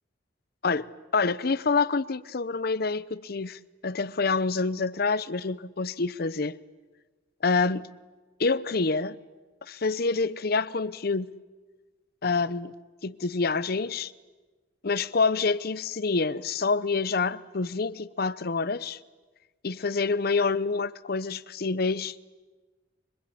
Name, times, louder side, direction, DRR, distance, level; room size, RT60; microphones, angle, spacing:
voice 1, 1.1-6.6 7.4-7.9 8.4-9.2 9.7-11.3 12.2-12.7 13.0-14.1 14.8-19.0 19.6-22.2, left 4 dB, 55° left, 0.8 m, -27 dB
25.0 x 25.0 x 8.6 m
head